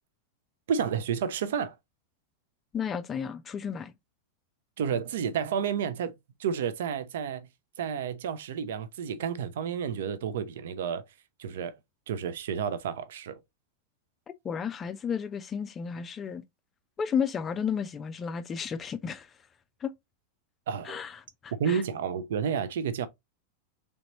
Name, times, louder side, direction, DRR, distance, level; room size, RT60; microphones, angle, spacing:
voice 1, 0.7-1.7 4.8-6.1 6.4-7.5 7.8-11.0 11.4-11.8 12.1-13.4 20.7-21.0 21.6-23.1, right 7 dB, 60° right, 0.5 m, -30 dB
voice 2, 2.7-3.9 14.4-16.4 17.0-19.3 19.8-19.9 20.8-21.8, left 7 dB, 25° left, 0.4 m, -33 dB
4.0 x 3.4 x 2.9 m
figure-of-eight pair, 90°, 0 cm